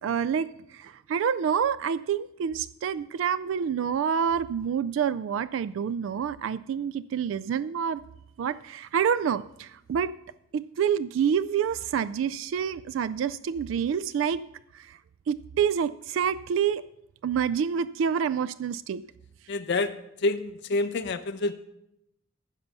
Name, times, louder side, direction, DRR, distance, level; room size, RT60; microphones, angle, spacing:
voice 1, 0.0-8.0 8.4-10.1 10.5-14.4 14.7-15.0 15.3-16.8 17.2-19.0, right 7 dB, 75° right, 15 dB, 0.3 m, -27 dB
voice 2, 19.5-21.5, left 2 dB, 60° left, 9 dB, 0.5 m, -28 dB
15.0 x 5.5 x 5.9 m, 0.81 s
head